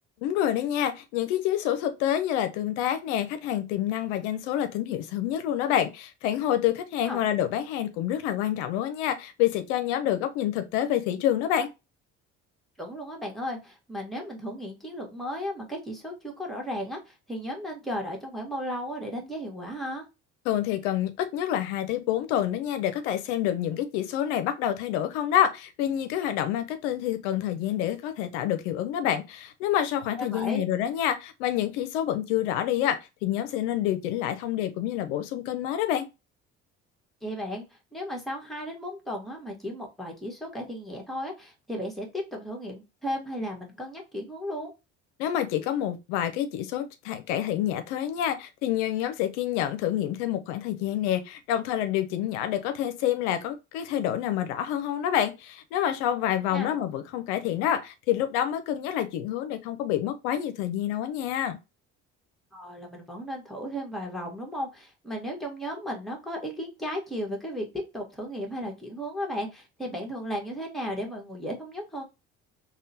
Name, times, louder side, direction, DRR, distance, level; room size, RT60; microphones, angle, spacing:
voice 1, 0.2-11.7 20.5-36.1 45.2-61.6, left 11 dB, 85° left, 0.5 m, -27 dB
voice 2, 12.8-20.0 30.1-30.6 37.2-44.7 56.5-56.7 62.5-67.7 67.9-72.0, equal, ahead, 1.3 m, -35 dB
3.5 x 2.2 x 2.6 m
supercardioid pair, 65°, 33 cm